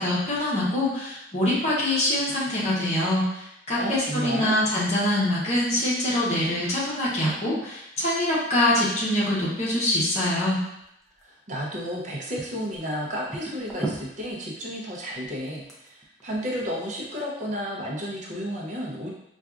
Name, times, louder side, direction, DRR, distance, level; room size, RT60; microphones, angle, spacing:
voice 1, 0.0-10.6, left 1 dB, 40° left, -7 dB, 0.9 m, -24 dB
voice 2, 3.8-4.5 11.2-19.1, equal, 40° right, -3 dB, 0.6 m, -32 dB
sound 1, 9.3-12.0 12.3-17.2, right 2 dB, ahead, 0.5 m, -39 dB
4.3 x 2.4 x 2.4 m, 0.81 s
head